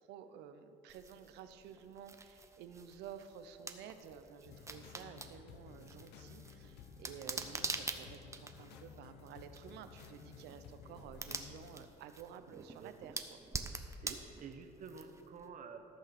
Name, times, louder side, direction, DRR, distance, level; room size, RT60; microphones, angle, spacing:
voice 1, 0.0-13.5, right 8 dB, 85° right, 10 dB, 0.8 m, -52 dB
sound 1, 0.9-15.4, right 3 dB, 15° right, 0.7 m, -46 dB
sound 2, 4.4-11.9, left 7 dB, 80° left, 0.8 m, -55 dB
voice 2, 12.5-12.9 14.0-15.9, right 5 dB, 50° right, 6 dB, 1.1 m, -50 dB
14.0 x 5.9 x 6.9 m, 2.9 s
cardioid pair, 110°, 17 cm